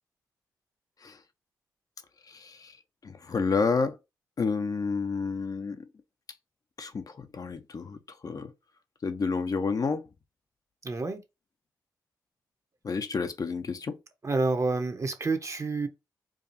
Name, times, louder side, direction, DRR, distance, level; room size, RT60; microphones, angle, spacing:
voice 1, 2.3-2.8 3.0-4.0 4.4-5.9 6.8-8.0 8.2-8.5 9.0-10.1 12.8-14.0, left 4 dB, 50° left, 0.6 m, -30 dB
voice 2, 10.8-11.2 14.2-15.9, right 3 dB, 40° right, 0.9 m, -28 dB
4.8 x 2.3 x 2.6 m
supercardioid pair, 40°, 8 cm